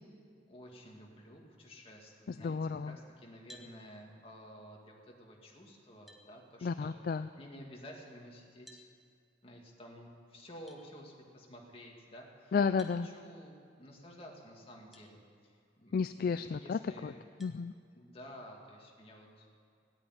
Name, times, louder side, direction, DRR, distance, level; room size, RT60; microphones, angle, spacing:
voice 1, 0.5-2.6 2.8-6.9 7.4-8.8 9.4-12.5 13.0-17.2 17.9-19.5, equal, 30° left, -1 dB, 2.2 m, -52 dB
voice 2, 2.3-3.0 6.6-7.3 12.5-13.1 15.9-17.1 17.4-17.7, left 5 dB, 50° left, 11 dB, 0.3 m, -32 dB
sound 1, 3.5-3.8 5.4-5.5 6.1-6.3 8.7-8.9 10.7-10.8 12.8-13.0 14.9-15.1 15.7-15.8 17.4-17.6, equal, ahead, 0.9 m, -55 dB
16.0 x 8.8 x 9.8 m, 2.3 s
head